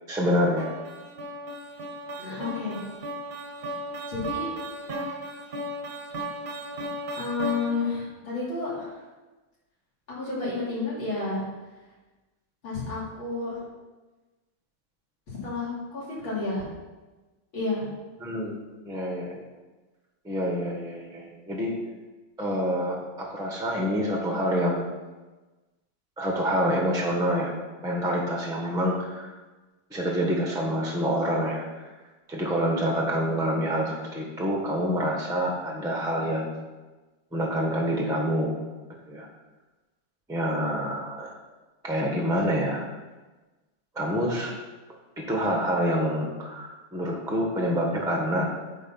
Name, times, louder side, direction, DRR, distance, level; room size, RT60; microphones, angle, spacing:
voice 1, 0.1-0.7 18.2-19.4 20.2-21.7 22.4-24.8 26.2-27.5 27.8-29.3 29.9-31.6 32.3-36.5 37.3-38.6 39.1-39.3 40.3-41.4 41.8-42.9 43.9-44.5 45.2-48.5, equal, 5° right, 0 dB, 0.6 m, -27 dB
sound 1, 0.6-8.0, right 1 dB, 40° right, 0.9 m, -36 dB
voice 2, 2.2-2.8 4.1-4.5 7.1-9.0 10.1-11.5 12.6-13.6 15.4-16.7 17.5-17.9, left 3 dB, 65° left, -8 dB, 3.7 m, -30 dB
8.7 x 4.2 x 5.6 m, 1.2 s
omnidirectional pair, 2.4 m